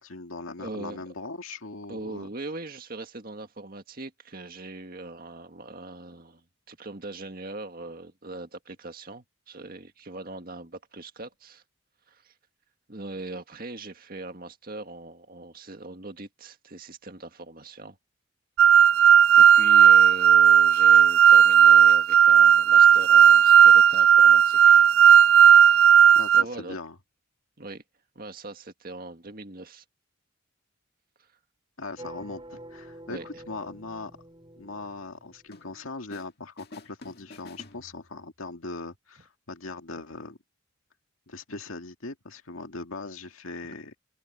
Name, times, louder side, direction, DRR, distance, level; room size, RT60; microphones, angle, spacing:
voice 1, 0.0-2.3 26.1-27.0 31.8-34.1 34.6-40.4 41.3-43.9, left 3 dB, 80° left, 2.1 m, -39 dB
voice 2, 0.6-1.0 1.9-11.6 12.1-12.3 12.9-18.0 18.7-18.8 19.4-24.9 25.6-26.0 26.3-26.8 27.6-27.8 28.2-29.8 33.1-33.3, right 2 dB, 45° right, 1.9 m, -41 dB
sound 1, 18.6-26.4, right 8 dB, 70° right, 0.4 m, -15 dB
sound 2, 32.0-35.7, right 1 dB, 25° right, 7.7 m, -47 dB
sound 3, 35.5-36.3 36.6-38.3, left 2 dB, 50° left, 2.0 m, -49 dB
head